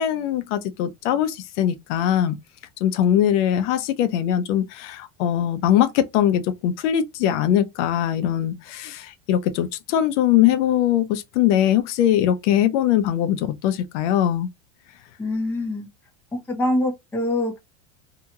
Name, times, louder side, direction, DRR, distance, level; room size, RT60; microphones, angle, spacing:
voice 1, 0.0-2.4 2.8-14.5, left 11 dB, 70° left, 0.7 m, -21 dB
voice 2, 15.2-15.9 16.3-17.6, left 1 dB, 5° left, 0.6 m, -24 dB
2.8 x 2.3 x 2.7 m
supercardioid pair, 140°, 38 cm